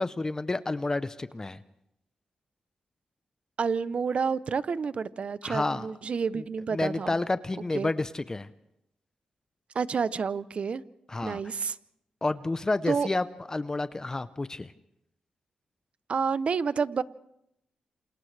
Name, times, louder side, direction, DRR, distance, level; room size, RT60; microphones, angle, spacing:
voice 1, 0.0-1.6 5.4-5.9 6.4-6.5 6.7-8.5 11.1-11.4 12.2-14.7, left 2 dB, 25° left, 0.7 m, -30 dB
voice 2, 3.6-7.2 7.7-7.9 9.7-10.8 11.2-11.8 12.9-13.1 16.1-17.0, right 5 dB, 55° right, 0.7 m, -29 dB
28.0 x 27.5 x 3.3 m
cardioid pair, 70°, 2 cm